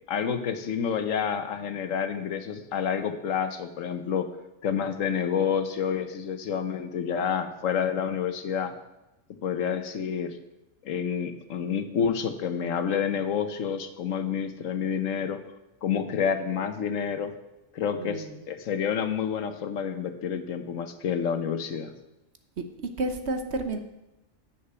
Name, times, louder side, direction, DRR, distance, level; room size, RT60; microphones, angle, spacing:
voice 1, 0.1-4.3 4.6-8.7 9.4-10.4 10.8-15.4 15.8-17.3 17.7-21.9, left 7 dB, 75° left, 9 dB, 1.3 m, -29 dB
voice 2, 18.0-18.4 22.6-23.8, right 2 dB, 55° right, 7 dB, 1.2 m, -31 dB
9.7 x 7.3 x 6.7 m, 0.94 s
omnidirectional pair, 1.4 m